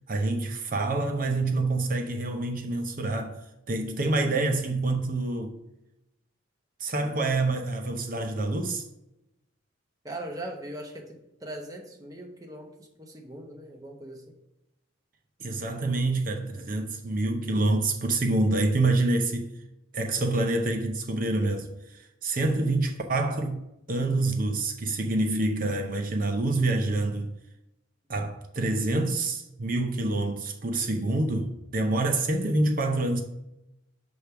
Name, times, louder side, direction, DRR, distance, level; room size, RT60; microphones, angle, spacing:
voice 1, 0.1-5.6 6.8-8.8 15.4-19.5 19.9-23.6 23.9-27.3 28.1-33.2, right 2 dB, 40° right, 0.5 m, -27 dB
voice 2, 10.0-14.3, right 1 dB, 15° right, 0.9 m, -40 dB
6.3 x 3.4 x 5.6 m
head